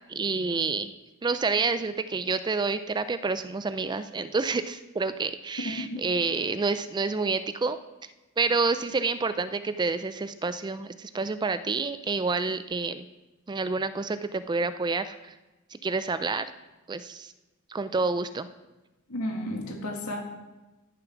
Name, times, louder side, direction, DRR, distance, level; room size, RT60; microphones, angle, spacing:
voice 1, 0.1-0.9 1.2-7.8 8.4-13.1 13.5-15.2 15.7-16.5 16.9-17.3 17.7-18.5, right 4 dB, 20° right, 12 dB, 0.3 m, -28 dB
voice 2, 19.1-20.2, left 1 dB, 75° left, 2 dB, 2.1 m, -32 dB
13.0 x 6.9 x 5.9 m, 1.1 s
head